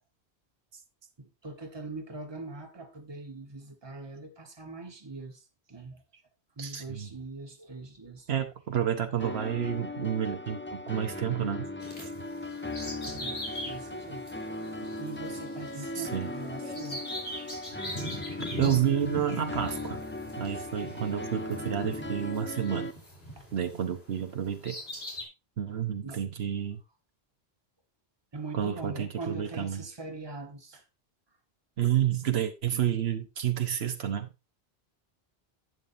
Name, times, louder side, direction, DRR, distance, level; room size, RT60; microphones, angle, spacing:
voice 1, 1.2-6.0 6.6-8.3 13.2-14.3 15.0-17.1 23.4-23.5 26.0-26.2 28.3-30.8, right 3 dB, 25° right, 1.3 m, -42 dB
voice 2, 6.6-7.1 8.3-11.7 15.9-16.3 18.6-20.0 20.4-22.9 23.5-24.8 25.6-26.8 28.5-29.8 31.8-34.3, right 9 dB, 85° right, 1.2 m, -30 dB
sound 1, 9.2-22.9, left 2 dB, 15° left, 0.6 m, -38 dB
Bird vocalization bird call bird song, 11.8-23.9 24.4-25.2, equal, 80° left, 3.6 m, -41 dB
11.0 x 8.4 x 2.6 m
omnidirectional pair, 1.0 m